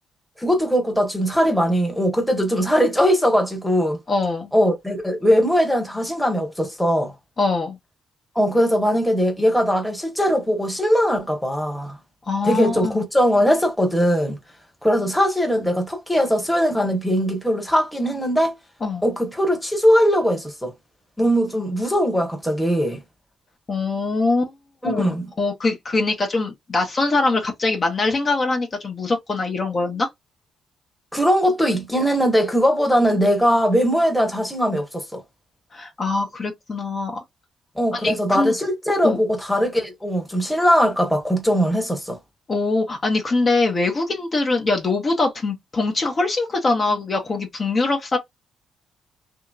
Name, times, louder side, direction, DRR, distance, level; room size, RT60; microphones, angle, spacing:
voice 1, 0.4-4.0 4.5-7.1 8.3-12.0 12.4-14.4 14.8-18.5 19.0-20.7 21.2-23.0 24.8-25.3 31.1-35.2 37.8-42.2, equal, 5° left, 1.0 m, -20 dB
voice 2, 4.1-4.5 7.4-7.8 12.3-13.0 18.8-19.0 23.7-24.5 24.8-30.1 35.7-37.2 37.9-38.5 39.0-39.2 42.5-48.2, left 3 dB, 35° left, 0.8 m, -23 dB
2.8 x 2.8 x 2.3 m
cardioid pair, 90°, 0 cm